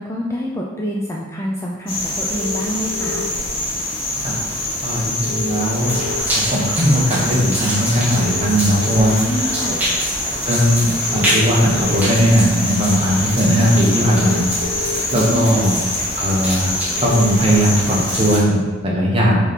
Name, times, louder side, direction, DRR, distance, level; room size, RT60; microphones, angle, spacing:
voice 1, 0.0-3.3 9.2-9.8 15.1-15.6, equal, 15° left, -2 dB, 0.5 m, -26 dB
sound 1, 1.9-18.4, left 1 dB, 80° left, 2.0 m, -25 dB
sound 2, 2.3-3.3 5.2-6.2 8.2-9.1 11.1-12.1 14.0-15.0 17.0-17.4, left 4 dB, 80° right, 1.1 m, -30 dB
voice 2, 4.8-5.9 6.3-9.8 10.4-14.4 14.7-15.8 16.2-16.7 17.0-19.4, equal, 30° right, -4 dB, 1.3 m, -18 dB
sound 3, 5.8-18.4, equal, 10° right, 1.6 m, -27 dB
5.0 x 4.0 x 5.3 m, 1.3 s
head